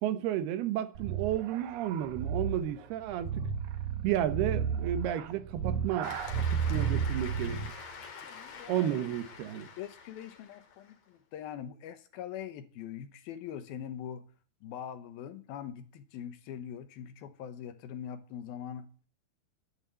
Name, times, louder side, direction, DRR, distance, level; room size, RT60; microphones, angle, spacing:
voice 1, 0.0-3.5 4.0-6.2 6.5-7.6 8.7-9.7, right 11 dB, 85° right, 3.2 m, -32 dB
sound 1, 1.0-7.8, right 7 dB, 65° right, 2.2 m, -33 dB
Cheering / Applause, 6.0-10.9, left 6 dB, 50° left, 2.8 m, -46 dB
voice 2, 8.2-8.9 9.8-14.2 14.6-19.1, left 9 dB, 75° left, 2.8 m, -42 dB
11.0 x 10.5 x 8.3 m
omnidirectional pair, 4.4 m